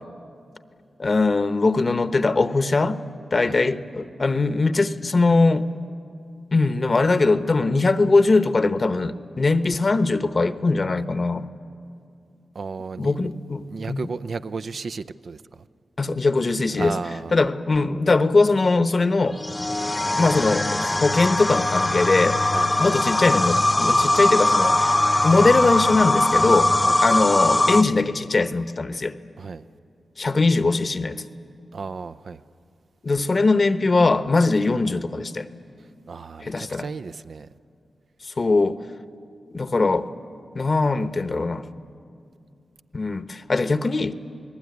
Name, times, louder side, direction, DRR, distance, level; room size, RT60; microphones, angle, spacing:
voice 1, 1.0-3.0 3.3-5.7 6.5-11.5 13.0-14.1 16.0-16.9 17.3-19.4 20.2-22.4 22.8-24.9 25.2-26.7 27.0-29.2 30.2-31.2 33.0-35.5 36.4-36.9 38.2-38.8 39.5-40.1 40.5-41.7 42.9-44.1, left 3 dB, 45° left, 11 dB, 1.0 m, -21 dB
voice 2, 12.5-13.3 13.7-15.6 16.8-17.3 22.4-22.7 26.7-27.0 29.4-29.6 31.7-32.4 36.1-37.5, right 4 dB, 70° right, 12 dB, 0.6 m, -34 dB
sound 1, 19.4-27.8, left 1 dB, 20° left, 0.7 m, -21 dB
28.0 x 19.5 x 9.5 m, 2.5 s
cardioid pair, 65°, 0 cm